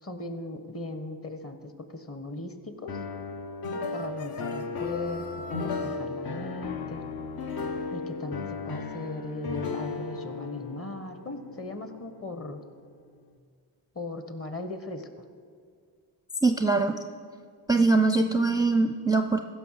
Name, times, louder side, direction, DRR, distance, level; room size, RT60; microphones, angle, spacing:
voice 1, 0.0-3.0 3.9-5.2 5.5-7.0 7.9-12.6 13.9-15.3, left 2 dB, 30° left, 8 dB, 1.4 m, -38 dB
sound 1, 2.9-12.8, left 4 dB, 55° left, 1.0 m, -35 dB
sound 2, 3.9-6.0, left 4 dB, 90° left, 1.0 m, -43 dB
voice 2, 16.4-17.0 17.7-19.4, right 3 dB, 10° right, 6 dB, 0.5 m, -22 dB
15.5 x 6.0 x 5.8 m, 2.1 s
supercardioid pair, 55°, 45 cm